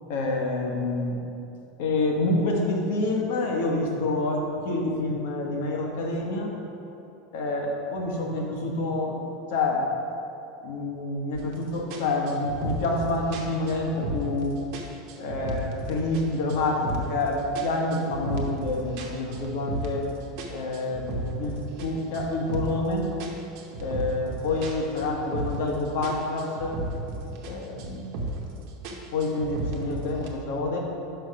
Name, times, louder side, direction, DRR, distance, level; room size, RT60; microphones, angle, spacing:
voice 1, 0.1-1.1 1.8-6.5 7.3-9.2 9.5-9.8 10.6-14.6 15.2-20.0 20.5-23.1 23.8-26.8 27.5-28.1 29.1-30.8, left 2 dB, 75° left, 0 dB, 1.2 m, -27 dB
sound 1, 11.3-11.6 11.9-14.4 14.7-16.2 16.5-17.2 17.5-20.1 20.4-22.9 23.2-25.7 26.0-27.5 27.8-28.5 28.8-30.3, right 2 dB, 60° right, 0.9 m, -34 dB
5.7 x 4.9 x 5.6 m, 2.8 s
supercardioid pair, 145°, 0 cm